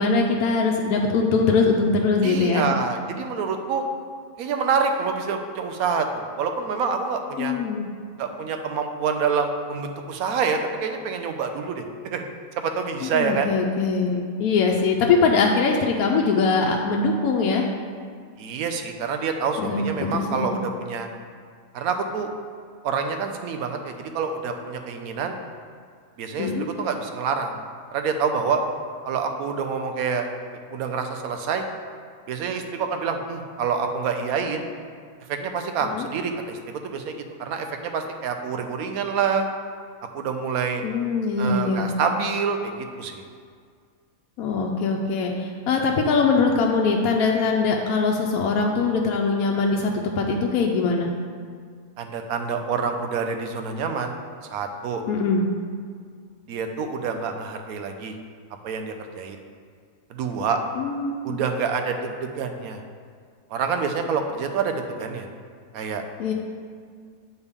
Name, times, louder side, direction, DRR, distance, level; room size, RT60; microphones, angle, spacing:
voice 1, 0.0-2.7 7.4-7.9 13.0-17.7 19.6-19.8 20.1-20.6 26.4-26.7 35.8-36.1 40.8-41.9 44.4-49.9 50.2-51.1 55.1-55.4 60.8-61.4 66.2-66.3, left 4 dB, 85° left, 1 dB, 1.0 m, -22 dB
voice 2, 2.2-3.8 4.4-7.6 8.2-11.8 12.1-12.2 12.6-13.5 18.4-21.1 21.7-22.3 22.8-25.4 26.2-27.6 27.9-28.6 29.0-30.3 30.7-31.6 32.3-34.7 35.3-36.6 36.8-37.1 37.4-39.5 40.1-40.8 41.4-43.2 52.0-54.2 54.5-55.0 56.5-58.1 58.6-59.4 60.1-60.6 61.2-62.8 63.5-65.3 65.7-66.0, right 5 dB, 85° right, 6 dB, 1.1 m, -27 dB
8.0 x 4.4 x 3.5 m, 2.1 s
omnidirectional pair, 1.5 m